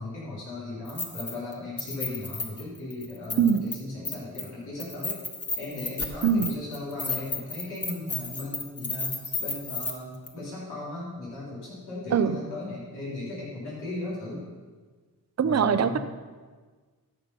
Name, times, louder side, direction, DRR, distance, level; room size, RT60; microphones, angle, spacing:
voice 1, 0.0-5.2 5.6-9.1 9.4-14.4 15.4-16.0, left 2 dB, 90° left, -9 dB, 3.7 m, -36 dB
Keys jangling, 0.9-1.5 1.8-3.8 4.1-4.5 4.8-9.9 10.3-10.4, left 3 dB, 40° left, 1.5 m, -33 dB
voice 2, 15.4-16.0, right 7 dB, 45° right, 11 dB, 0.6 m, -22 dB
13.5 x 5.6 x 5.6 m, 1.4 s
cardioid pair, 40°, 38 cm